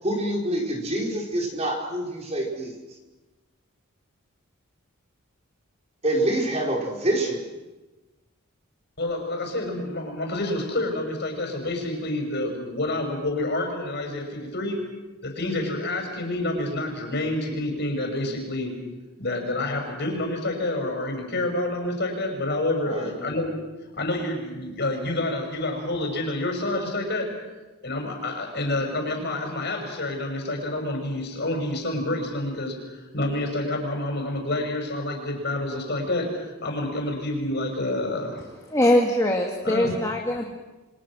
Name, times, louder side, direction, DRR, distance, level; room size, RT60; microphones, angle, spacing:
voice 1, 0.0-2.7 6.0-7.5 22.8-23.1, right 1 dB, 30° right, 0 dB, 4.9 m, -26 dB
voice 2, 9.0-14.8 15.2-18.8 19.2-23.5 23.9-27.3 27.8-38.4 39.6-39.9, left 1 dB, 50° left, 3 dB, 6.3 m, -28 dB
voice 3, 38.7-40.5, left 1 dB, 15° left, 0 dB, 2.1 m, -22 dB
28.5 x 25.5 x 6.3 m, 1.1 s
head